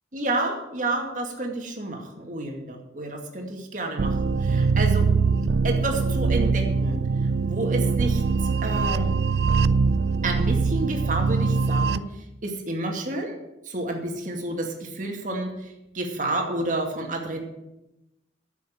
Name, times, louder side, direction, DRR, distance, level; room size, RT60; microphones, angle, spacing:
voice 1, 0.1-5.1 5.6-7.0 7.4-8.2 8.6-9.1 10.2-12.1 12.4-13.4 13.7-17.4, right 2 dB, 45° right, 2 dB, 2.3 m, -30 dB
sound 1, 4.0-12.0, right 4 dB, 65° right, 0.4 m, -22 dB
10.5 x 7.3 x 8.6 m, 0.94 s
head